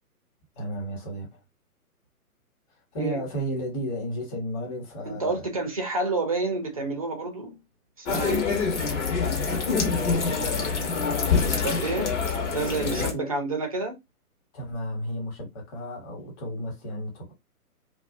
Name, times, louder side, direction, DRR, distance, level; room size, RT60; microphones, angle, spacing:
voice 1, 0.6-1.3 2.9-5.5 9.9-10.8 13.0-13.4 14.5-17.3, equal, 25° left, 1.1 m, -33 dB
voice 2, 5.0-7.6 8.0-8.4 11.4-12.1 12.5-14.0, right 3 dB, 25° right, 0.4 m, -29 dB
sound 1, 8.1-13.1, left 5 dB, 50° left, 1.1 m, -25 dB
2.4 x 2.3 x 2.5 m
hypercardioid pair, 135°, 45 cm